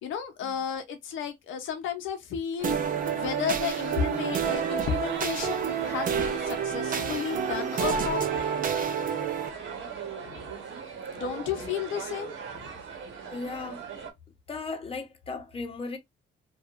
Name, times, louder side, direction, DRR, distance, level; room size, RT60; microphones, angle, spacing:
voice 1, 0.0-2.8 3.1-8.2 10.2-10.5 11.1-12.7, left 7 dB, 80° left, 0.6 m, -33 dB
sound 1, 2.6-9.5, right 7 dB, 45° right, 0.6 m, -29 dB
sound 2, 2.6-14.1, right 6 dB, 70° right, 1.0 m, -39 dB
voice 2, 13.3-14.1 14.5-16.0, left 3 dB, 30° left, 0.8 m, -37 dB
2.7 x 2.4 x 2.3 m
cardioid pair, 90°, 20 cm